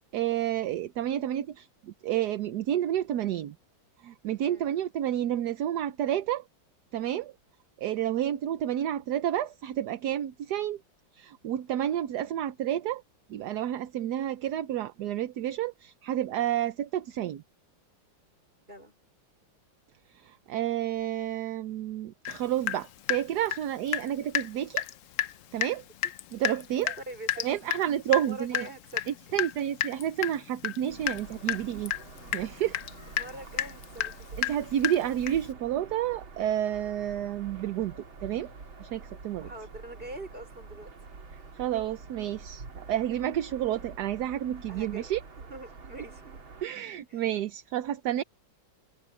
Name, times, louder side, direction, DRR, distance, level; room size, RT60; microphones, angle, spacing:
voice 1, 0.1-3.5 4.0-6.4 6.9-7.3 7.8-10.8 11.1-13.0 13.3-17.4 20.1-24.8 25.5-25.8 26.3-27.0 27.4-28.7 29.1-31.9 32.3-32.8 34.4-37.9 38.2-38.5 38.8-39.5 41.5-45.2 46.6-48.2, right 11 dB, 65° right, 1.2 m, -30 dB
Water tap faucet / Drip, 22.2-22.4 22.7-24.1 24.3-24.5 24.8-24.9 25.2-25.3 25.6-25.8 26.0-35.5, left 11 dB, 80° left, 0.7 m, -31 dB
voice 2, 27.1-27.7 28.2-29.1 33.2-34.3 39.4-40.9 44.7-45.1 45.4-46.4 47.1-47.2, right 1 dB, 25° right, 5.5 m, -44 dB
sound 1, 30.9-46.7, right 4 dB, 85° right, 3.6 m, -47 dB
omnidirectional pair, 2.1 m